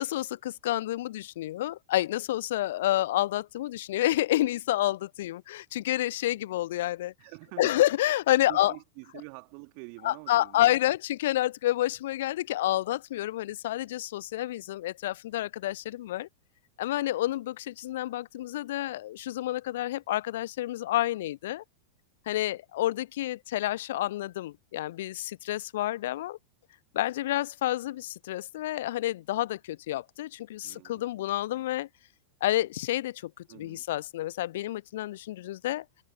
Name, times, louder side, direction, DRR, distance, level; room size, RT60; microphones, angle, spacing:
voice 1, 0.0-7.1 7.6-8.7 10.0-16.3 16.8-21.6 22.3-26.4 26.9-31.9 32.4-35.8, left 14 dB, 55° left, 1.1 m, -29 dB
voice 2, 7.2-7.8 8.5-10.8 30.6-31.1 33.5-33.8, right 40 dB or more, 45° right, 2.5 m, -46 dB
figure-of-eight pair, 90°, 0 cm